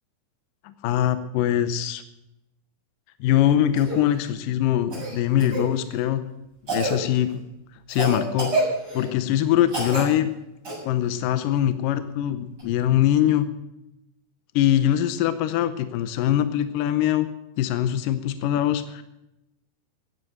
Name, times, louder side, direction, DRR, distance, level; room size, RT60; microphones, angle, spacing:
voice 1, 0.6-2.0 3.2-6.2 6.7-7.4 7.9-8.5 8.9-10.3 10.9-13.5 14.6-17.3 17.6-19.0, left 11 dB, 80° left, 11 dB, 2.0 m, -22 dB
Cough, 3.7-4.0 4.9-5.6 6.7-7.0 7.9-9.1 9.7-10.1 10.6-10.7 12.6-12.7, right 2 dB, 25° right, 8.2 m, -27 dB
16.0 x 10.5 x 7.8 m, 0.89 s
omnidirectional pair, 4.8 m